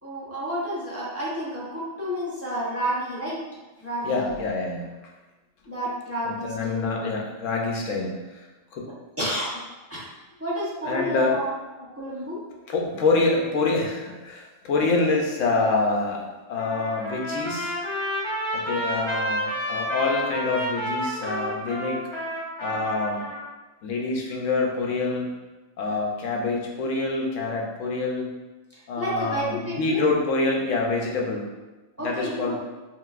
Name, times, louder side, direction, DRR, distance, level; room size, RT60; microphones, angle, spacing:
voice 1, 0.0-3.4 3.8-4.3 5.7-7.1 9.2-9.6 9.9-10.1 10.4-12.4 28.7-30.0 32.0-32.6, equal, 15° right, -8 dB, 0.9 m, -30 dB
voice 2, 4.0-4.9 6.2-8.2 8.7-8.9 10.8-11.4 12.7-16.2 16.5-17.8 18.5-22.0 22.6-23.3 23.8-25.3 25.8-28.3 28.9-31.5 32.0-32.6, left 3 dB, 70° left, 0 dB, 1.1 m, -26 dB
Trumpet, 16.6-23.4, equal, 25° left, 0.8 m, -30 dB
4.8 x 3.2 x 2.5 m, 1.2 s
omnidirectional pair, 1.4 m